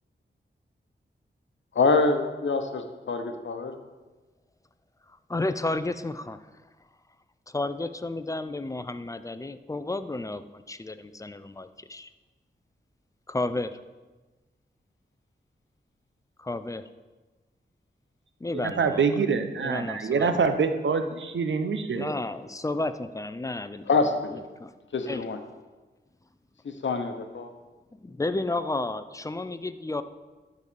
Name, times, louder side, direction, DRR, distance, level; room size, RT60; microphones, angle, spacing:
voice 1, 1.7-3.7 23.9-24.4 24.9-25.4 26.6-27.5, left 4 dB, 80° left, 7 dB, 0.9 m, -25 dB
voice 2, 5.3-6.4 7.5-12.1 13.3-13.8 16.4-16.9 18.4-19.0 19.6-20.3 21.9-23.9 24.6-24.7 25.1-25.2 28.0-30.0, left 2 dB, 15° left, 11 dB, 0.5 m, -32 dB
voice 3, 18.6-22.1, right 5 dB, 80° right, 8 dB, 0.8 m, -25 dB
11.0 x 4.0 x 6.9 m, 1.2 s
wide cardioid pair, 75°, 19 cm